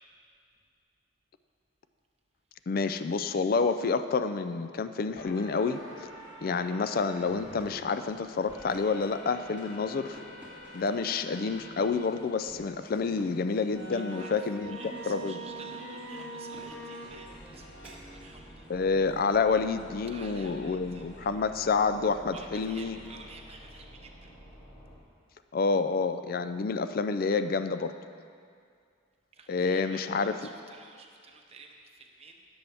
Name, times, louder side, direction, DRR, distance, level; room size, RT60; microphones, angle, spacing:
voice 1, 2.7-5.8 6.4-10.2 10.7-14.8 15.1-15.4 18.7-23.0 25.5-27.9 29.5-30.3, left 4 dB, 50° left, 11 dB, 0.4 m, -28 dB
sound 1, 5.0-23.2, equal, 65° left, 2.9 m, -54 dB
sound 2, 5.2-7.7 8.5-11.9 12.5-12.6 13.7-25.0, right 1 dB, 30° left, 1.8 m, -46 dB
sound 3, 7.3-18.1, equal, 10° right, 2.1 m, -54 dB
voice 2, 13.9-18.7 20.1-21.3 22.3-24.3 29.3-32.4, right 3 dB, 30° right, 2 dB, 0.8 m, -51 dB
16.5 x 7.0 x 3.4 m, 2.3 s
head